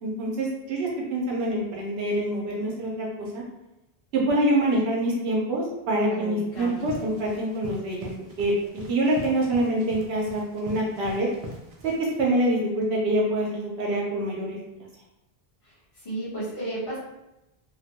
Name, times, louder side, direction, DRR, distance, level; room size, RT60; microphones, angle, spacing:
voice 1, 0.0-3.4 4.1-8.1 8.4-11.3 11.8-14.6, right 1 dB, 80° right, -3 dB, 0.9 m, -25 dB
voice 2, 6.0-6.8 15.6-17.0, right 1 dB, 35° left, -8 dB, 1.0 m, -34 dB
sound 1, 6.5-12.2, equal, 55° right, 0.4 m, -42 dB
2.6 x 2.1 x 2.8 m, 0.93 s
omnidirectional pair, 1.0 m